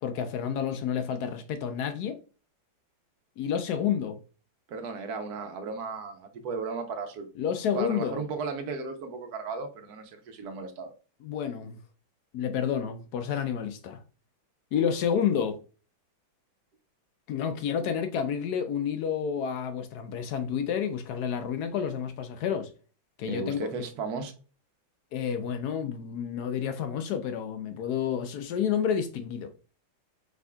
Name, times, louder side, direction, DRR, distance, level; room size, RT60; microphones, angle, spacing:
voice 1, 0.0-2.2 3.4-4.2 7.4-8.2 11.2-11.8 12.3-14.0 14.7-15.6 17.3-22.7 23.2-23.7 25.1-29.5, left 8 dB, 75° left, 0.9 m, -30 dB
voice 2, 4.7-7.3 7.8-10.9 23.3-24.3, right 4 dB, 60° right, 1.2 m, -35 dB
5.0 x 3.5 x 2.2 m
omnidirectional pair, 2.2 m